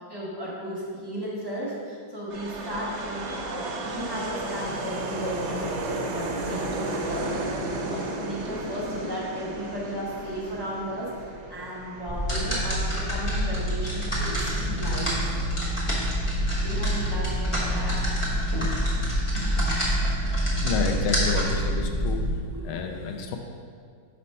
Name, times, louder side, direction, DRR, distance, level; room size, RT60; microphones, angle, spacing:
voice 1, 0.1-7.3 7.9-15.4 16.6-18.1 19.1-19.2 22.5-22.7, equal, 25° right, -8 dB, 0.5 m, -35 dB
sound 1, 2.3-20.6, right 2 dB, 80° right, 1.5 m, -35 dB
sound 2, 12.1-22.3, equal, 20° left, 0.8 m, -26 dB
voice 2, 20.6-22.2 22.6-23.4, left 6 dB, 85° left, 4 dB, 1.5 m, -29 dB
5.2 x 4.2 x 5.4 m, 2.1 s
omnidirectional pair, 2.3 m